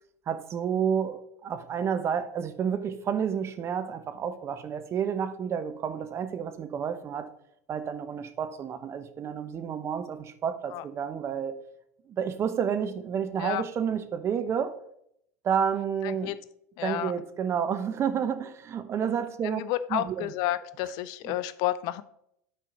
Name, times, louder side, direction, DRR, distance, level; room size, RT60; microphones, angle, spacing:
voice 1, 0.3-7.3 7.7-11.6 12.1-14.8 15.4-16.3 16.8-19.6 19.9-20.3, right 7 dB, 35° right, 0.9 m, -30 dB
voice 2, 16.0-16.4 16.8-17.1 19.4-22.0, left 14 dB, 55° left, 0.5 m, -31 dB
9.2 x 4.4 x 5.3 m
hypercardioid pair, 95°, 8 cm